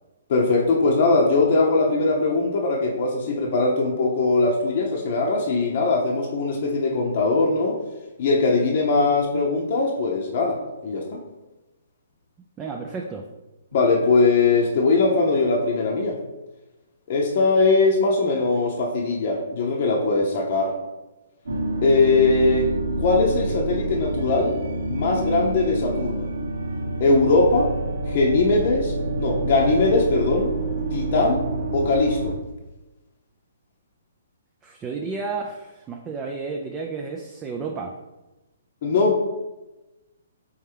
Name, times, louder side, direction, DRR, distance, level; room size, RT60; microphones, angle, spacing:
voice 1, 0.3-7.8 8.2-11.2 13.7-16.2 17.1-20.8 21.8-22.7 23.0-24.6 24.9-26.3 27.0-27.7 28.0-30.5 30.9-32.3 38.8-39.3, left 3 dB, 45° left, -1 dB, 0.7 m, -21 dB
voice 2, 12.6-13.2 34.6-37.9, right 4 dB, 20° right, 1 dB, 0.4 m, -32 dB
sound 1, 21.5-32.4, right 2 dB, 70° right, 1.1 m, -27 dB
4.3 x 3.5 x 3.3 m, 1.0 s
figure-of-eight pair, 130°, 0 cm